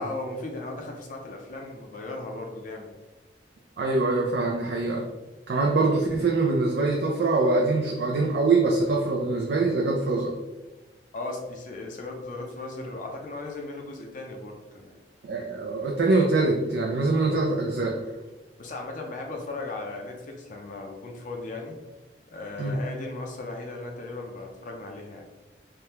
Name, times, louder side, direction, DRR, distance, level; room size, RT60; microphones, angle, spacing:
voice 1, 0.0-2.9 11.1-14.9 18.6-21.8 22.3-25.3, left 2 dB, 45° left, 1 dB, 0.5 m, -37 dB
voice 2, 3.8-5.1 5.5-10.3 15.2-18.0 22.6-22.8, right 3 dB, 65° right, -1 dB, 0.4 m, -24 dB
3.5 x 2.2 x 2.8 m, 1.2 s
head